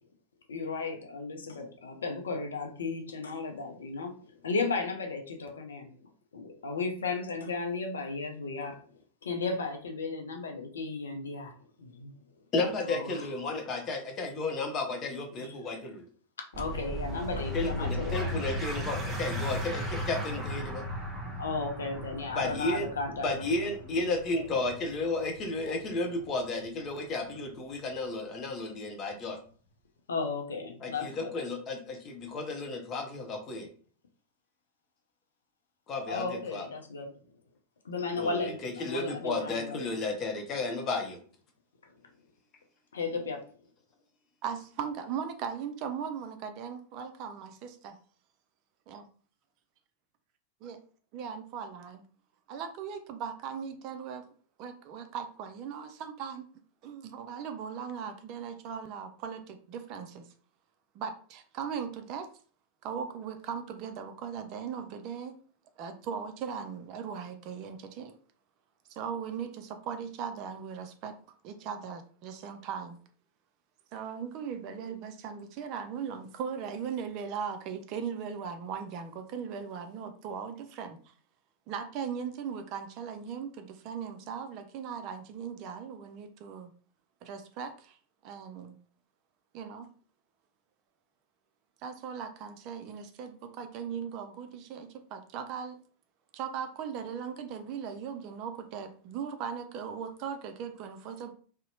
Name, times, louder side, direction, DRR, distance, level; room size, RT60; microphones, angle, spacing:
voice 1, 0.5-5.9 6.3-8.8 9.2-11.5 11.8-12.1 12.8-13.1 15.4-15.5 16.5-18.4 21.4-23.5 25.7-25.8 30.1-31.3 36.1-37.2 37.8-39.9 42.9-43.4, left 4 dB, 70° left, 3 dB, 0.5 m, -34 dB
voice 2, 12.5-16.0 17.5-20.9 22.3-22.9 23.2-29.4 30.8-33.7 35.9-36.7 38.2-41.2, left 2 dB, 30° left, 3 dB, 0.6 m, -33 dB
sound 1, 16.5-27.6, equal, 20° right, 0.7 m, -36 dB
voice 3, 44.4-48.0 48.9-49.1 50.6-50.8 51.1-52.1 52.5-54.2 54.6-56.5 56.8-60.3 60.9-62.3 62.8-65.4 65.8-68.2 68.9-71.2 71.4-73.0 73.9-81.0 81.7-86.7 87.2-88.0 88.2-88.8 89.5-89.9 91.8-95.8 96.3-101.3, right 7 dB, 45° right, 8 dB, 0.4 m, -38 dB
2.6 x 2.0 x 2.7 m, 0.44 s
figure-of-eight pair, 90°, 0 cm